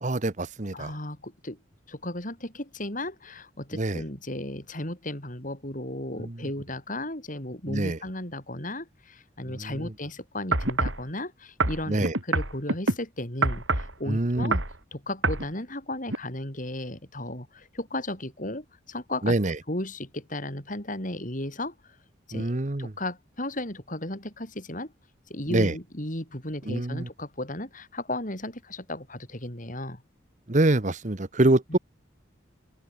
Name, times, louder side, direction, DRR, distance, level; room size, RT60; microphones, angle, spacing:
voice 1, 0.0-0.9 3.7-4.0 6.2-6.4 7.7-8.0 9.5-9.9 11.9-12.1 14.1-14.6 19.2-19.6 22.3-22.9 25.5-25.7 26.7-27.1 30.5-31.8, right 2 dB, 40° right, 1.1 m, -25 dB
voice 2, 0.7-1.6 1.9-12.0 12.2-14.6 14.9-21.7 22.3-24.9 25.3-30.0 31.7-31.8, left 1 dB, 45° left, 7.4 m, -35 dB
sound 1, 10.5-11.0 11.6-13.0 13.4-13.9 14.4-14.8 15.2-15.5 16.1-16.2, right 2 dB, 85° right, 6.7 m, -25 dB
open air
head